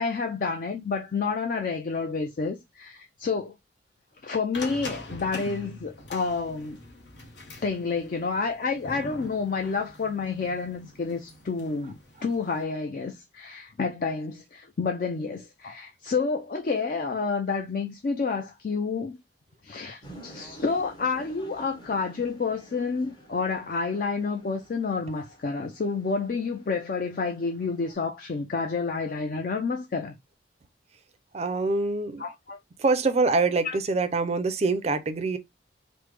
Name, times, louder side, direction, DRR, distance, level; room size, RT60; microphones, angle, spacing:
voice 1, 0.0-3.5 4.2-6.8 7.6-19.2 19.6-30.1 32.2-32.6 33.6-33.8, left 4 dB, 50° left, 0.4 m, -29 dB
sound 1, 4.5-12.6, left 2 dB, 70° left, 0.9 m, -43 dB
sound 2, 20.0-27.9, right 1 dB, 25° left, 0.8 m, -51 dB
voice 2, 31.3-32.3 32.8-35.4, right 3 dB, 35° right, 0.4 m, -25 dB
3.2 x 2.1 x 3.3 m
head